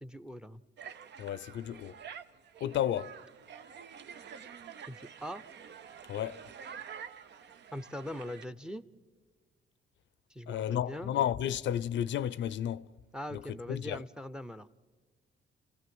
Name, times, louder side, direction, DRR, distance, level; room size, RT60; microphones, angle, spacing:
voice 1, 0.0-0.6 4.9-5.4 7.7-8.8 10.3-11.1 13.1-14.7, equal, 5° right, 0.7 m, -41 dB
sound 1, 0.8-8.5, right 7 dB, 60° right, 0.8 m, -48 dB
voice 2, 1.2-2.0 2.6-3.2 6.1-6.4 10.5-12.9 13.3-14.0, left 10 dB, 70° left, 0.6 m, -32 dB
29.0 x 15.5 x 7.8 m
cardioid pair, 90°, 20 cm